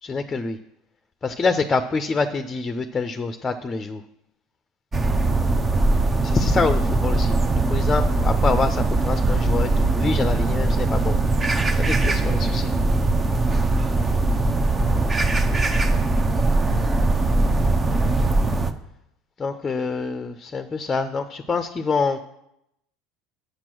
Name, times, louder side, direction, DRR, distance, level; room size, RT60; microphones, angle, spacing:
voice 1, 0.0-0.6 1.2-4.0 6.2-11.2 11.7-12.8 19.4-22.2, left 4 dB, 25° left, 9 dB, 0.6 m, -26 dB
sound 1, 4.9-18.7, right 2 dB, 25° right, 0.8 m, -21 dB
8.1 x 6.1 x 6.1 m, 0.81 s
hypercardioid pair, 75°, 0 cm